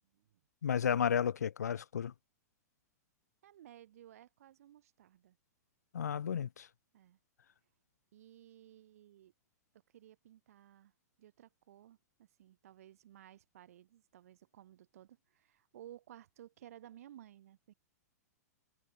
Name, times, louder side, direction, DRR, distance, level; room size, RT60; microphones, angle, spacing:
voice 1, 0.6-2.1 5.9-6.7, left 8 dB, 70° left, 0.6 m, -32 dB
voice 2, 3.4-5.4 6.9-7.2 8.1-9.3 9.9-10.9 11.2-17.7, right 12 dB, 60° right, 5.2 m, -57 dB
figure-of-eight pair, 105°, 9 cm